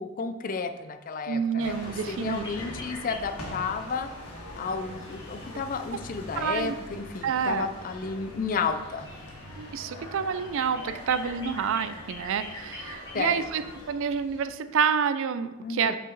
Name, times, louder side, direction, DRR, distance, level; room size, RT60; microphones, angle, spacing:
voice 1, 0.0-4.1 4.6-9.1 13.1-13.4 15.6-16.0, left 5 dB, 40° left, 9 dB, 0.4 m, -32 dB
voice 2, 1.3-2.4 6.3-6.7 7.2-7.7 9.6-13.6 13.9-16.0, right 7 dB, 60° right, 12 dB, 0.3 m, -28 dB
sound 1, 1.6-13.9, left 1 dB, 90° left, 1.5 m, -43 dB
sound 2, 2.2-14.4, left 2 dB, 20° left, 1.8 m, -47 dB
5.9 x 4.8 x 3.9 m, 1.1 s
head